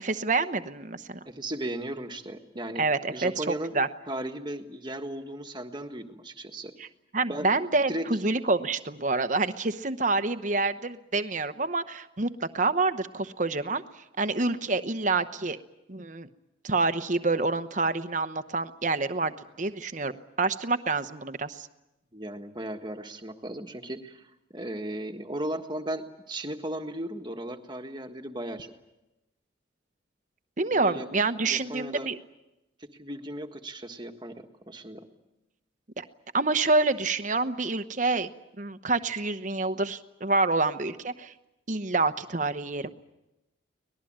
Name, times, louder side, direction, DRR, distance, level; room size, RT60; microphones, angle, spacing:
voice 1, 0.0-1.2 2.8-3.4 3.7-3.9 6.8-6.9 7.1-13.8 14.2-15.6 15.9-16.3 16.6-20.1 20.4-21.7 30.6-32.2 36.0-36.1 36.3-38.3 38.6-41.3 41.7-42.9, right 3 dB, 40° right, 11 dB, 1.0 m, -27 dB
voice 2, 1.2-3.7 4.1-6.7 7.3-7.5 7.9-8.1 22.1-28.7 30.7-31.1 31.4-32.1 32.8-35.0, right 1 dB, 25° right, 5 dB, 1.6 m, -36 dB
24.5 x 19.5 x 8.9 m, 0.96 s
head